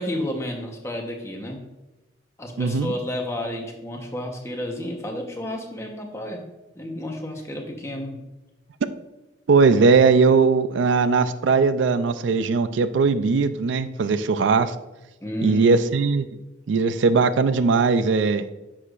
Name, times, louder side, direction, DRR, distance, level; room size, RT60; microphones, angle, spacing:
voice 1, 0.0-1.6 2.4-6.4 6.7-8.2 15.2-15.8, left 1 dB, 15° left, 1 dB, 1.0 m, -31 dB
voice 2, 2.6-2.9 9.5-14.7 15.4-16.3 16.7-18.4, right 4 dB, 85° right, 12 dB, 0.4 m, -19 dB
9.9 x 6.3 x 2.5 m, 1.1 s
head